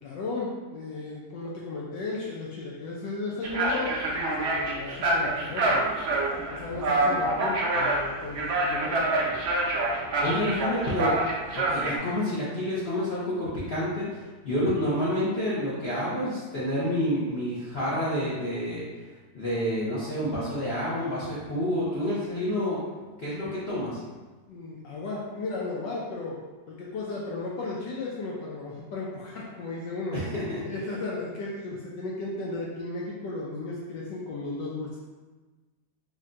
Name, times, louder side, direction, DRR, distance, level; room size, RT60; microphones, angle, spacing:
voice 1, 0.0-5.8 6.5-9.4 24.5-26.4 26.7-30.2 30.6-35.0, left 3 dB, 80° left, -4 dB, 1.2 m, -35 dB
sound 1, 3.4-12.0, right 2 dB, 90° right, 0.6 m, -26 dB
voice 2, 10.2-11.2 11.5-18.9 19.3-22.8 23.2-24.0 30.1-30.6, left 1 dB, 60° left, -9 dB, 0.6 m, -29 dB
3.6 x 2.2 x 3.8 m, 1.3 s
omnidirectional pair, 2.0 m